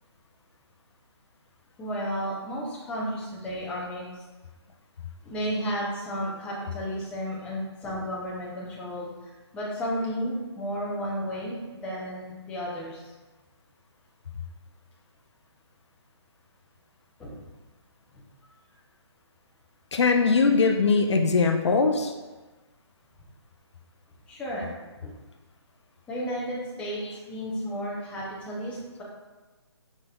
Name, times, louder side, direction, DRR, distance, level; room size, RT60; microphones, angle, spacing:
voice 1, 1.8-4.2 5.2-13.1 17.2-17.4 18.1-18.5 24.3-24.7 25.0-25.1 26.1-29.0, equal, 10° left, -5 dB, 0.6 m, -33 dB
voice 2, 19.9-22.1, left 4 dB, 75° left, 4 dB, 0.5 m, -21 dB
5.1 x 4.1 x 2.3 m, 1.2 s
hypercardioid pair, 150°, 15 cm